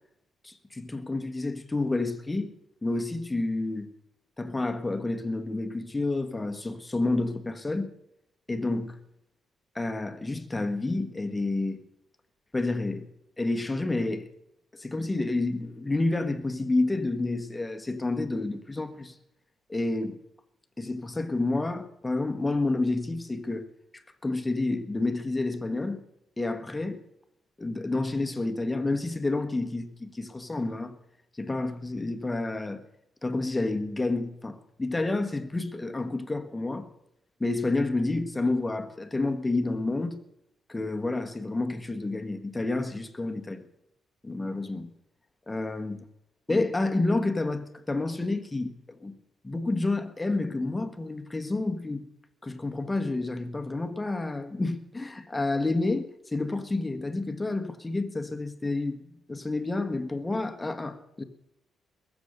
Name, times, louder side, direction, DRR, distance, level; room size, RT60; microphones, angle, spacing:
voice 1, 0.4-2.5 2.8-3.9 4.4-7.9 8.5-9.0 9.7-11.8 12.5-13.1 13.4-14.3 14.7-19.1 19.7-20.2 20.8-23.7 23.9-26.0 26.4-27.0 27.6-31.0 31.4-32.8 33.2-36.9 37.4-40.2 40.7-43.6 44.2-44.9 45.5-46.0 46.5-48.7 49.0-49.1 49.4-52.0 52.4-59.0 59.3-61.2, left 2 dB, 15° left, 1.4 m, -29 dB
21.5 x 7.2 x 6.7 m
cardioid pair, 90°, 0 cm